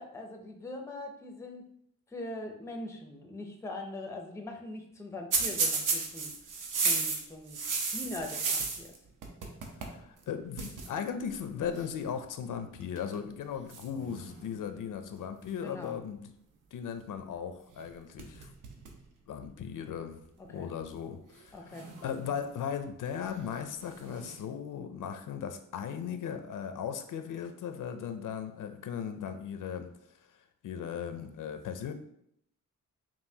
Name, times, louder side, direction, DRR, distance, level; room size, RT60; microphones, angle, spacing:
voice 1, 0.0-1.7 2.1-6.3 6.8-7.6 7.9-8.9 15.6-16.0 20.4-20.7 21.5-21.9, left 2 dB, 10° left, 3 dB, 0.4 m, -42 dB
sound 1, 5.3-9.0 9.2-10.0 10.2-10.3 10.6-10.9 11.8-12.0 12.8-13.2 13.7-14.8 17.7-17.9 18.2-19.0 19.4-19.5 20.5-20.6 21.7-22.6 23.8-24.4, right 4 dB, 70° right, 0.7 m, -33 dB
voice 2, 9.8-16.3 16.7-18.5 19.3-20.2 20.5-29.9 30.6-31.9, left 7 dB, 70° left, 8 dB, 0.5 m, -37 dB
5.4 x 2.5 x 2.7 m, 0.72 s
wide cardioid pair, 160°, 33 cm